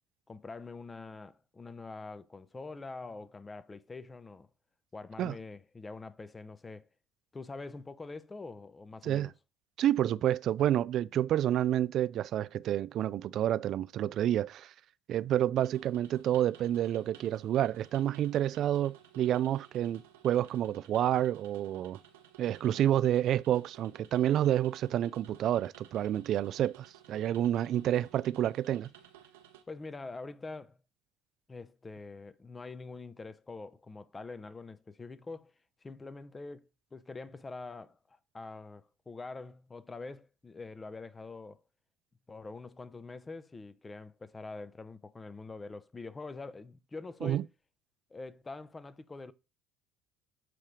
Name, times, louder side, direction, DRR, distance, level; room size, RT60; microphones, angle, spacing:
voice 1, 0.3-4.5 4.9-6.9 7.3-9.3 29.7-30.8 31.5-35.5 35.8-41.6 42.3-47.5 48.1-49.3, left 3 dB, 20° left, 0.7 m, -45 dB
voice 2, 9.8-14.7 15.1-22.0 22.4-28.9 47.2-47.4, right 11 dB, 55° right, 0.3 m, -29 dB
sound 1, 15.6-29.6, right 10 dB, 80° right, 0.9 m, -57 dB
7.6 x 3.2 x 5.1 m
hypercardioid pair, 65°, 0 cm